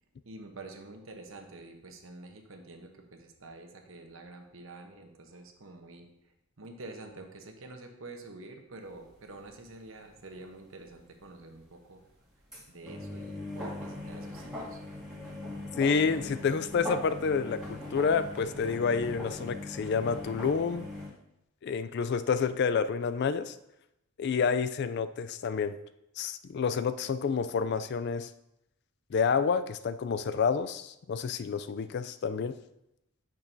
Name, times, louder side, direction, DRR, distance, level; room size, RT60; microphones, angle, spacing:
voice 1, 0.2-12.0 12.7-14.8, right 2 dB, 65° right, 4 dB, 1.0 m, -48 dB
sound 1, 9.2-9.3 9.5-9.8 10.1-10.2 10.4-10.5 12.3-21.1, left 1 dB, 5° right, 2.2 m, -40 dB
voice 2, 15.8-20.9 21.6-23.5 24.2-25.8 26.2-28.3 29.1-32.6, left 5 dB, 50° left, 12 dB, 0.3 m, -29 dB
8.8 x 6.2 x 2.7 m, 0.85 s
head